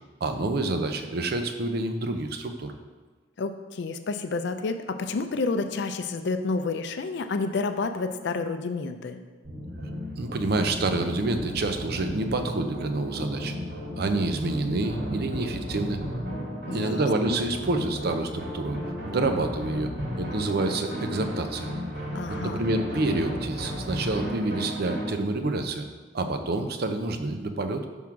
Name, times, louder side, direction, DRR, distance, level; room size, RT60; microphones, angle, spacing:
voice 1, 0.2-2.7 10.2-13.5 14.0-16.0 16.7-18.8 19.1-19.9 20.2-21.7 22.4-25.9 26.1-27.9, right 2 dB, 55° right, 7 dB, 0.5 m, -28 dB
voice 2, 3.4-9.2 16.7-17.3 22.1-22.6, left 3 dB, 65° left, 8 dB, 0.4 m, -30 dB
sound 1, 9.4-25.1, equal, 70° right, 2.2 m, -34 dB
6.0 x 3.6 x 5.8 m, 1.3 s
head